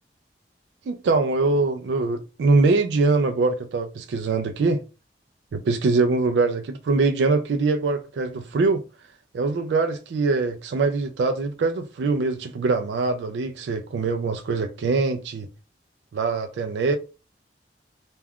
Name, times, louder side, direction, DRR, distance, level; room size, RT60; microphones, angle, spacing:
voice 1, 0.9-4.8 5.5-8.8 9.3-15.5 16.1-17.0, right 3 dB, 70° right, 0.3 m, -23 dB
2.3 x 2.2 x 3.4 m
head